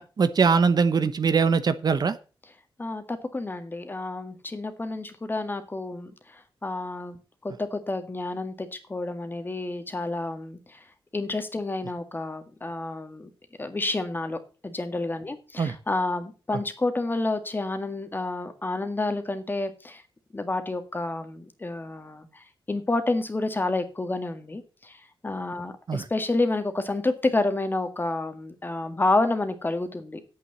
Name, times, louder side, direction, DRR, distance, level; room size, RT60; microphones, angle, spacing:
voice 1, 0.0-2.2 15.6-15.7 25.9-26.0, right 5 dB, 50° right, 12 dB, 1.0 m, -22 dB
voice 2, 2.8-10.8 11.1-13.3 13.6-14.4 14.6-20.0 20.3-30.2, left 2 dB, 25° left, 8 dB, 1.8 m, -29 dB
9.4 x 8.4 x 7.1 m, 0.35 s
wide cardioid pair, 110°, 9 cm